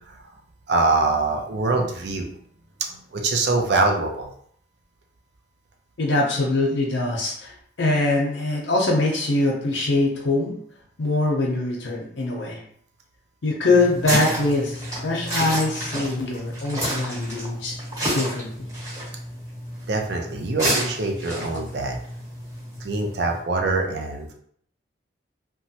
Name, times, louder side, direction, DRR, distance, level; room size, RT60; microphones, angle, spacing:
voice 1, 0.7-2.3 2.9-4.3 19.9-22.0 22.8-24.3, right 3 dB, 60° right, 2 dB, 0.5 m, -24 dB
voice 2, 6.0-7.5 7.8-10.5 11.0-12.6 13.4-17.8 18.1-18.7, left 2 dB, 75° left, -2 dB, 0.6 m, -23 dB
sound 1, 13.6-23.4, right 1 dB, 20° right, 1.3 m, -30 dB
3.0 x 2.2 x 2.8 m, 0.63 s
head